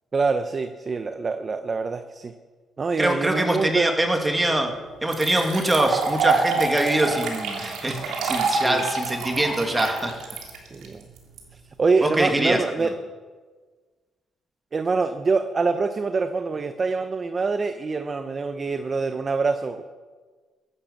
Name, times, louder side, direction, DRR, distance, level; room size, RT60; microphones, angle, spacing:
voice 1, 0.1-2.3 2.8-3.9 8.6-8.8 10.7-11.0 11.8-12.9 14.7-19.8, right 4 dB, 35° right, 9 dB, 0.8 m, -25 dB
voice 2, 3.0-4.7 5.0-10.1 12.0-12.9, right 1 dB, 15° right, 4 dB, 2.4 m, -23 dB
sound 1, 4.4-4.5 5.1-11.4, right 4 dB, 85° right, 3.0 m, -27 dB
15.0 x 11.0 x 7.1 m, 1.4 s
cardioid pair, 90°, 0 cm